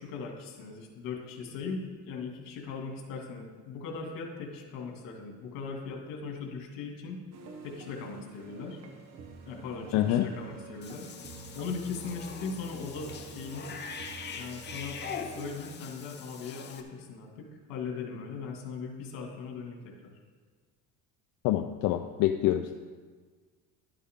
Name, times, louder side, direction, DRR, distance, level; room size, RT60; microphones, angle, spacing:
voice 1, 0.0-7.2 7.6-8.8 9.4-11.1 11.5-13.7 14.4-15.0 15.3-20.2, left 5 dB, 80° left, 1 dB, 2.3 m, -39 dB
sound 1, 7.3-15.5, right 4 dB, 50° right, 1.3 m, -48 dB
voice 2, 9.9-10.3 21.4-22.7, left 13 dB, 60° left, 6 dB, 0.6 m, -26 dB
Cat / Bathtub (filling or washing), 10.8-16.8, left 6 dB, 30° left, 0.9 m, -43 dB
12.0 x 8.5 x 3.7 m, 1.5 s
cardioid pair, 135°, 34 cm